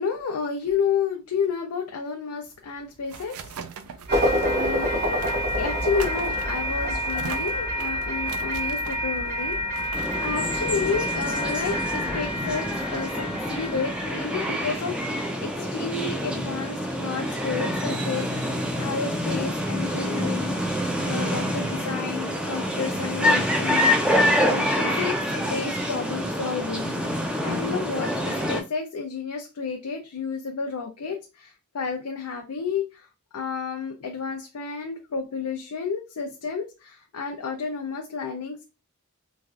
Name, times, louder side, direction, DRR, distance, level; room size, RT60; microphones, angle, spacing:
voice 1, 0.0-3.5 4.0-4.1 4.6-5.1 5.6-23.9 24.5-27.1 27.4-33.1 33.3-38.6, left 5 dB, 85° left, 3 dB, 0.5 m, -31 dB
sound 1, 2.5-11.8, right 6 dB, 75° right, 0.4 m, -42 dB
sound 2, 4.1-15.2, equal, 45° right, 0.7 m, -28 dB
sound 3, 9.9-28.6, equal, 5° right, 0.4 m, -26 dB
3.2 x 2.4 x 2.3 m, 0.28 s
head